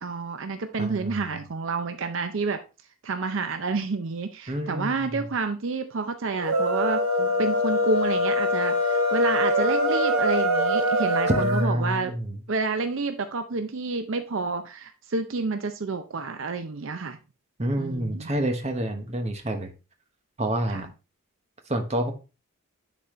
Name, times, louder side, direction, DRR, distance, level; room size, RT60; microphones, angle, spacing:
voice 1, 0.0-2.6 3.0-7.0 7.4-12.1 12.5-17.2 17.8-18.3 20.7-20.8, right 4 dB, 65° right, 8 dB, 0.5 m, -29 dB
voice 2, 0.8-1.2 4.5-5.2 7.2-7.3 11.3-12.4 17.6-19.7 20.4-20.9 21.7-22.1, right 1 dB, 30° right, 5 dB, 1.1 m, -28 dB
sound 1, 6.4-11.7, left 1 dB, 90° right, 1.1 m, -23 dB
10.0 x 4.2 x 3.1 m, 0.30 s
head